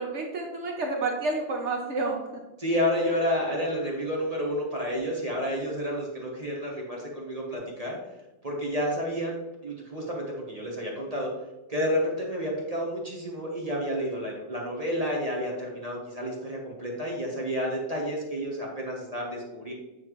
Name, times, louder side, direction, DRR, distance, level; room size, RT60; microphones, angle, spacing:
voice 1, 0.0-2.2, right 3 dB, 75° right, 1 dB, 0.6 m, -29 dB
voice 2, 2.6-8.0 8.4-9.4 9.6-11.3 11.7-19.7, equal, 25° right, -2 dB, 0.8 m, -30 dB
9.1 x 4.3 x 3.1 m, 1.0 s
omnidirectional pair, 2.4 m